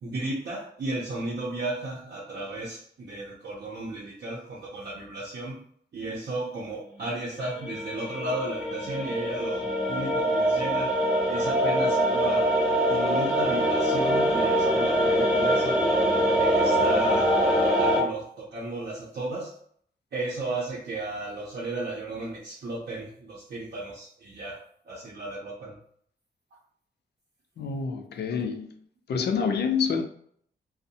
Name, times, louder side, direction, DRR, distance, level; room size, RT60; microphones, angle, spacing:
voice 1, 0.0-5.6 5.9-11.0 11.3-12.5 12.9-15.8 16.3-19.5 20.1-25.8 29.2-29.3, right 2 dB, 65° right, 0.6 m, -34 dB
sound 1, 7.6-18.0, equal, 5° right, 0.5 m, -24 dB
voice 2, 27.6-28.7 29.1-30.0, left 6 dB, 65° left, 0.4 m, -27 dB
2.6 x 2.0 x 2.7 m
wide cardioid pair, 160°, 18 cm